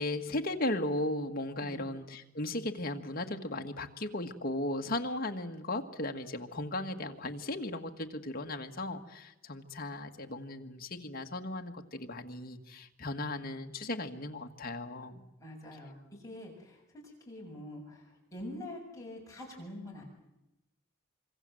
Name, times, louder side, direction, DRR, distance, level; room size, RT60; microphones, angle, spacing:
voice 1, 0.0-15.2, left 1 dB, 45° left, 4 dB, 1.7 m, -36 dB
voice 2, 15.4-20.0, left 1 dB, 15° left, -2 dB, 7.3 m, -45 dB
26.0 x 24.0 x 7.8 m, 0.91 s
head